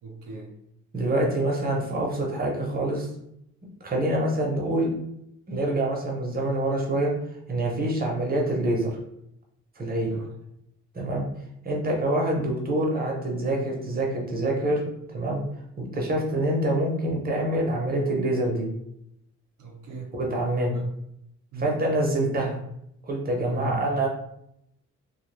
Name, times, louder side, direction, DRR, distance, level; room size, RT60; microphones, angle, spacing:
voice 1, 0.0-0.6 10.1-10.3 19.6-20.2 20.7-20.9 21.5-21.8 23.4-23.8, right 5 dB, 80° right, -1 dB, 0.7 m, -38 dB
voice 2, 0.9-3.1 3.8-4.9 5.5-7.1 7.5-8.9 9.8-10.1 10.9-11.2 11.6-14.8 15.1-15.4 15.8-18.7 20.1-20.8 21.6-22.6 23.0-24.1, right 1 dB, 30° right, 0 dB, 0.7 m, -26 dB
2.2 x 2.1 x 3.1 m, 0.77 s
cardioid pair, 90°, 30 cm